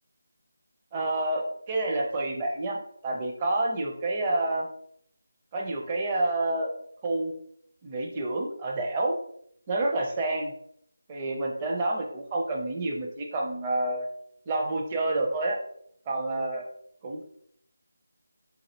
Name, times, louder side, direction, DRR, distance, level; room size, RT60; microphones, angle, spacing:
voice 1, 0.9-2.8 3.0-4.7 5.5-6.7 7.0-7.3 7.8-9.1 9.7-10.5 11.1-14.1 14.5-15.6 16.1-16.6 17.0-17.2, right 2 dB, 20° right, 0 dB, 0.6 m, -28 dB
4.0 x 2.7 x 2.8 m, 0.67 s
figure-of-eight pair, 165°, 0 cm